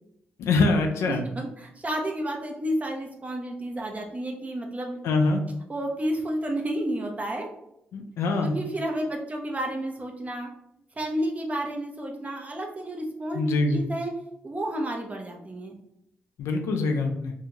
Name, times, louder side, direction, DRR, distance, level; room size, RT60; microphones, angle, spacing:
voice 1, 0.4-1.2 5.0-5.4 7.9-8.6 13.3-13.8 16.4-17.3, left 3 dB, 75° left, 4 dB, 0.4 m, -24 dB
voice 2, 1.3-5.0 5.7-7.5 8.4-10.5 11.0-14.1 14.4-15.7, right 1 dB, 30° right, 1 dB, 0.7 m, -31 dB
2.7 x 2.2 x 2.9 m, 0.79 s
supercardioid pair, 50°, 5 cm